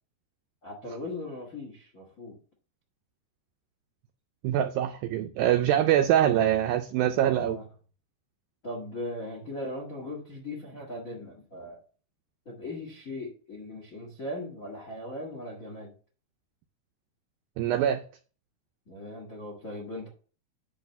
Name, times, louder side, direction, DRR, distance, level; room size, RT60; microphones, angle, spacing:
voice 1, 0.6-2.4 7.1-7.6 8.6-11.8 12.4-15.9 18.9-20.1, left 1 dB, 80° left, 0 dB, 0.7 m, -39 dB
voice 2, 4.4-7.6 17.6-18.0, right 11 dB, 85° right, 7 dB, 2.0 m, -24 dB
10.0 x 3.4 x 7.0 m, 0.40 s
omnidirectional pair, 4.7 m